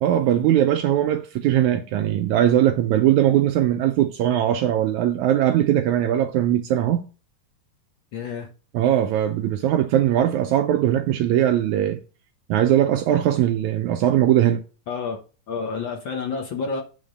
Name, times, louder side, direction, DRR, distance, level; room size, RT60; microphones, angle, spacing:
voice 1, 0.0-7.1 8.7-12.0 12.5-14.6, right 11 dB, 80° right, 1.7 m, -20 dB
voice 2, 8.1-8.5 14.9-15.2 15.5-16.8, left 5 dB, 65° left, 1.2 m, -29 dB
8.6 x 3.9 x 6.5 m
omnidirectional pair, 3.9 m